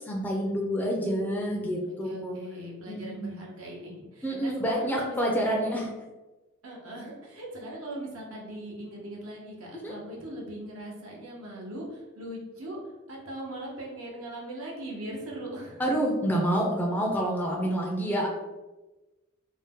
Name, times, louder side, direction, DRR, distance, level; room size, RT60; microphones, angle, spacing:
voice 1, 0.1-2.3 2.9-3.3 4.2-5.9 9.8-9.9 15.8-18.3, equal, 10° left, -2 dB, 0.3 m, -28 dB
voice 2, 1.1-1.7 2.0-5.9 6.6-12.8 13.1-15.8, right 1 dB, 85° right, -3 dB, 0.8 m, -40 dB
2.6 x 2.0 x 3.5 m, 1.1 s
head